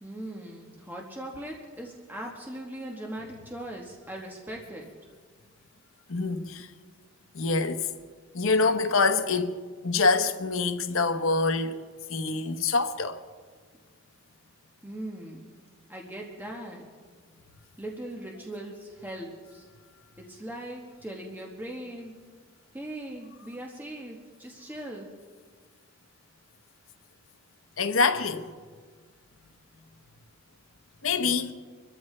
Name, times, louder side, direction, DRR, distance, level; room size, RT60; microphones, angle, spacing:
voice 1, 0.0-4.9 14.8-15.5 15.9-16.8 17.8-19.6 20.3-22.1 22.7-25.1, right 1 dB, 10° right, 1.2 m, -39 dB
voice 2, 6.1-6.7 7.3-7.9 8.3-9.6 9.8-11.8 12.1-13.2 27.8-28.5 31.0-31.5, left 4 dB, 80° left, 0.9 m, -25 dB
25.5 x 13.5 x 3.3 m
head